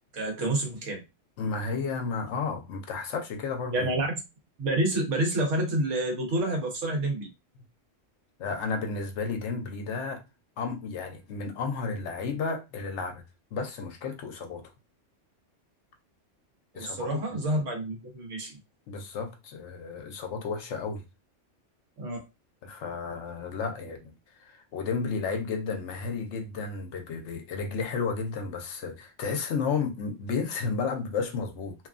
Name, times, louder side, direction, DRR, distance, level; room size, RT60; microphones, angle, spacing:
voice 1, 0.1-1.0 3.7-4.1 4.6-7.3 16.7-18.5 22.0-22.2, right 1 dB, 80° right, 1.3 m, -28 dB
voice 2, 1.4-3.9 8.4-10.2 10.6-13.2 13.5-14.6 16.7-17.5 18.9-21.0 22.6-24.1 24.4-31.8, left 5 dB, 70° left, 0.9 m, -32 dB
2.9 x 2.2 x 2.4 m
omnidirectional pair, 1.3 m